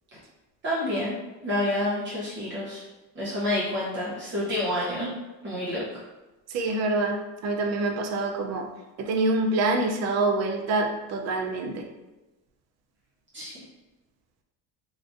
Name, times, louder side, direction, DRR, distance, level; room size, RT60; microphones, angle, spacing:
voice 1, 0.6-1.1 1.4-2.8 3.1-5.1 5.4-5.8 13.3-13.5, left 1 dB, 35° right, -8 dB, 0.8 m, -28 dB
voice 2, 6.5-8.7 9.0-11.9, right 2 dB, 50° right, 4 dB, 0.5 m, -26 dB
3.7 x 2.5 x 2.5 m, 1.1 s
cardioid pair, 140°, 34 cm